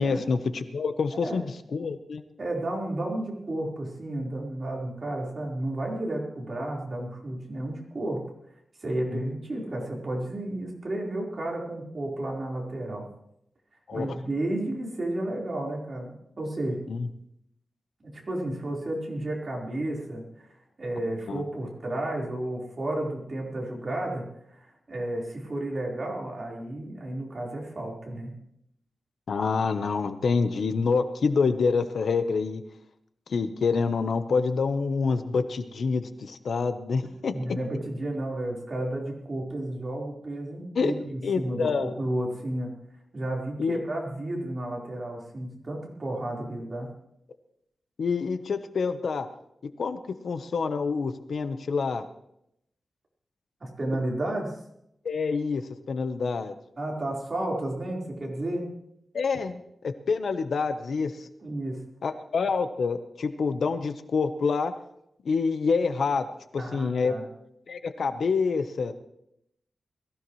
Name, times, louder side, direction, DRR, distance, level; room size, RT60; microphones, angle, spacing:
voice 1, 0.0-2.2 9.1-9.2 13.9-14.1 16.9-17.1 21.3-21.4 29.3-32.6 33.3-37.3 40.7-40.9 41.2-41.9 43.6-43.8 48.0-49.3 49.8-50.0 50.2-52.1 55.0-56.5 59.1-61.3 62.0-64.7 65.2-66.3 66.5-67.1 67.7-68.9, left 5 dB, 70° left, 9 dB, 1.0 m, -27 dB
voice 2, 1.1-1.4 2.4-8.3 8.8-13.1 13.9-16.8 18.0-24.2 24.5-28.3 37.3-42.7 43.1-46.9 53.6-54.6 56.8-58.7 61.4-61.8 66.6-67.2, right 1 dB, 40° right, -2 dB, 4.3 m, -32 dB
21.5 x 15.5 x 3.2 m, 0.77 s
wide cardioid pair, 130°, 0 cm